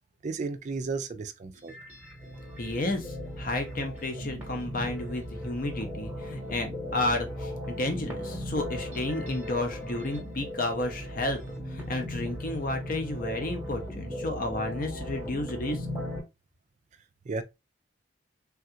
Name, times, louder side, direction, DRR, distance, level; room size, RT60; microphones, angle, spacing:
voice 1, 0.2-1.7 17.3-17.4, right 4 dB, 40° right, 0.3 m, -33 dB
sound 1, 1.5-16.2, equal, 10° right, 1.0 m, -37 dB
voice 2, 2.6-11.4 11.7-15.9, left 2 dB, 45° left, 0.7 m, -32 dB
3.4 x 2.4 x 2.6 m
head